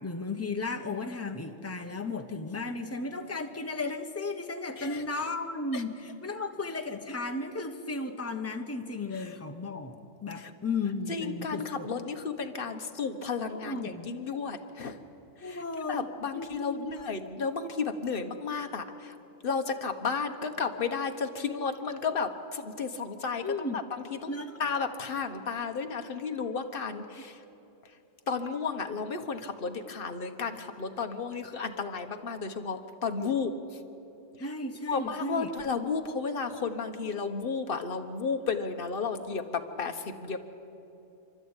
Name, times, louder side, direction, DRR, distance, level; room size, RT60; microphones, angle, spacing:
voice 1, 0.0-11.9 13.5-14.1 15.4-16.1 16.3-16.8 23.4-23.8 24.3-24.6 33.2-33.3 34.4-35.5, left 3 dB, 10° left, 5 dB, 1.0 m, -35 dB
voice 2, 11.1-15.0 15.4-15.6 15.9-19.1 19.4-24.3 24.6-27.4 27.8-27.9 28.3-33.5 34.4-34.5 34.9-40.4, left 5 dB, 45° left, 6 dB, 1.3 m, -33 dB
28.0 x 12.0 x 9.0 m, 2.9 s
omnidirectional pair, 1.3 m